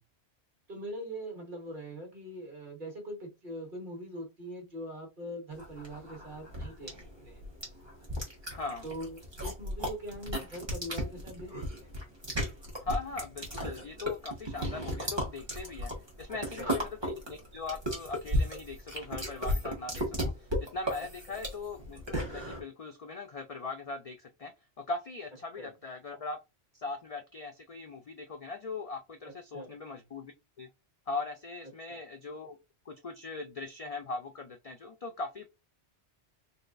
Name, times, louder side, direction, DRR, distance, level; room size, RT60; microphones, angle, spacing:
voice 1, 0.7-7.4 8.8-11.5 11.8-11.9 16.3-16.8 21.3-21.4 25.6-25.7 29.5-29.7 31.9-32.0, equal, 45° right, 3 dB, 1.4 m, -42 dB
sound 1, 5.6-22.6, equal, 25° right, 1.4 m, -35 dB
voice 2, 8.5-8.9 12.7-15.9 16.2-24.5 24.8-26.4 26.7-30.3 30.6-30.7 31.1-32.6 32.9-35.5, left 3 dB, 65° left, 6 dB, 0.3 m, -40 dB
4.1 x 3.3 x 2.5 m, 0.25 s
omnidirectional pair, 1.2 m